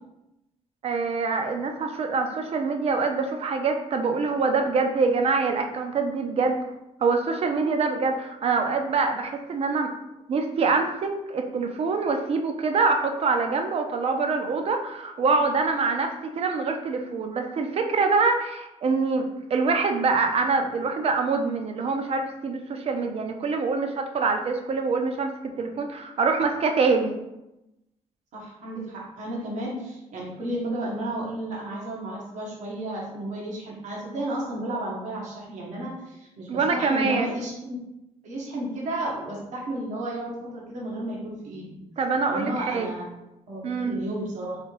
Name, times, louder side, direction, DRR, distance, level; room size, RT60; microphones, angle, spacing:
voice 1, 0.8-6.6 7.0-9.9 10.3-25.3 25.6-27.2 36.5-37.3 42.0-43.0 43.6-43.9, right 4 dB, 55° right, 4 dB, 0.6 m, -25 dB
voice 2, 28.3-37.8 38.2-41.8 42.2-43.1 43.5-44.6, right 1 dB, 85° right, -4 dB, 1.2 m, -33 dB
3.3 x 2.8 x 4.5 m, 0.92 s
cardioid pair, 100°, 12 cm